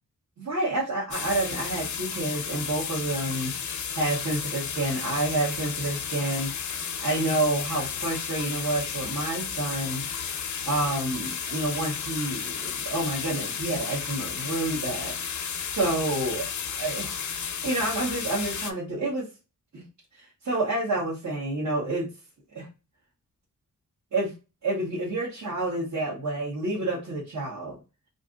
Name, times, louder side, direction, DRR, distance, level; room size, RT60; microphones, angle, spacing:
voice 1, 0.4-3.5 3.9-6.5 7.0-10.1 10.6-15.1 15.7-16.5 16.8-17.1 17.4-19.3 19.7-19.8 20.1-22.1 22.5-22.7 24.1-24.3 24.6-27.8, right 2 dB, 60° right, -7 dB, 1.2 m, -29 dB
sound 1, 1.1-18.7, left 7 dB, 60° left, 0.5 m, -33 dB
2.6 x 2.5 x 3.6 m, 0.30 s
wide cardioid pair, 115°, 34 cm